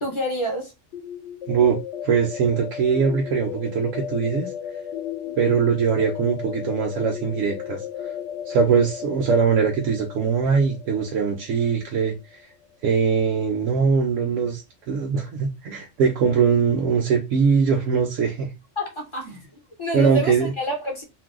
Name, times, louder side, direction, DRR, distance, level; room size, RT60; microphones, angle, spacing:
voice 1, 0.0-0.7 5.2-5.5 18.8-19.4 19.8-21.0, equal, 30° left, 0.6 m, -28 dB
sound 1, 0.9-12.6, left 9 dB, 70° left, 0.9 m, -35 dB
voice 2, 1.5-1.8 2.0-4.5 5.4-8.1 8.5-12.4 12.8-14.6 14.9-18.5 19.3-19.4 19.9-20.5, right 6 dB, 80° right, 0.9 m, -21 dB
2.6 x 2.1 x 3.5 m
omnidirectional pair, 1.3 m